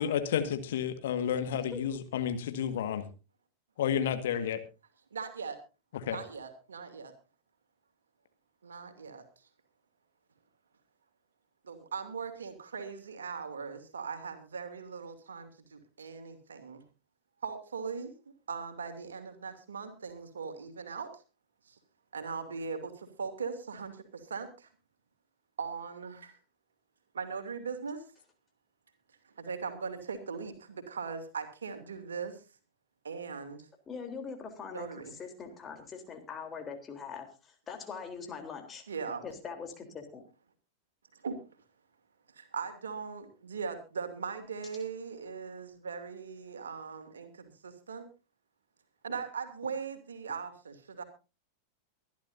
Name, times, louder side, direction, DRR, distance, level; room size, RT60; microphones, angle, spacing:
voice 1, 0.0-3.1 3.8-4.6 6.1-6.2, left 9 dB, 60° left, 9 dB, 1.7 m, -31 dB
voice 2, 1.5-2.0 33.9-34.9 35.1-38.8 39.2-40.2, left 5 dB, 25° left, 5 dB, 3.6 m, -42 dB
voice 3, 5.1-5.6 6.0-7.1 8.6-9.2 11.6-16.8 17.4-18.2 18.5-21.2 21.6-21.8 22.1-24.7 25.6-26.4 27.1-28.0 29.2-32.4 33.0-33.7 34.7-35.1 38.9-39.2 41.1-41.4 42.3-48.0 49.0-51.0, right 5 dB, 70° right, 8 dB, 2.8 m, -39 dB
23.5 x 11.5 x 2.7 m, 0.31 s
figure-of-eight pair, 90°, 0 cm